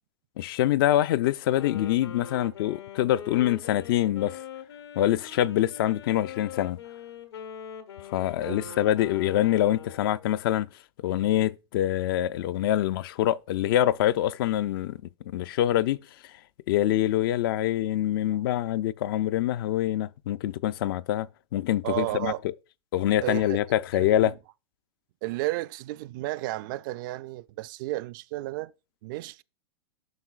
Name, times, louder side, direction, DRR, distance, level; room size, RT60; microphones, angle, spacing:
voice 1, 0.4-4.4 5.0-6.8 8.1-10.7 11.0-15.0 15.3-16.0 16.7-21.3 21.5-22.3 22.9-24.3, left 13 dB, 55° left, 0.4 m, -25 dB
Wind instrument woodwind instrument, 1.4-10.3, left 8 dB, 75° left, 1.2 m, -43 dB
voice 2, 8.4-8.8 18.3-18.4 21.8-22.4 23.2-23.6 23.9-24.3 25.2-28.7 29.0-29.4, right 18 dB, 50° right, 0.4 m, -33 dB
9.4 x 5.9 x 2.4 m
hypercardioid pair, 110°, 14 cm